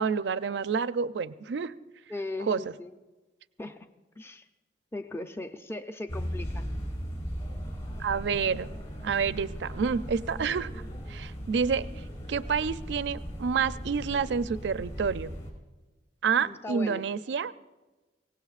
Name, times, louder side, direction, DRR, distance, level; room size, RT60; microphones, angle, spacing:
voice 1, 0.0-1.7 2.5-2.6 8.0-8.7 9.0-10.7 11.1-11.9 12.3-15.3 16.2-17.5, right 6 dB, 70° right, 14 dB, 0.4 m, -28 dB
voice 2, 2.1-2.9 3.6-3.9 4.2-4.5 4.9-6.7 16.4-17.1, left 2 dB, 15° left, 7 dB, 0.5 m, -38 dB
sound 1, 6.1-15.5, equal, 40° left, 4.8 m, -38 dB
24.0 x 18.0 x 2.4 m, 1.2 s
head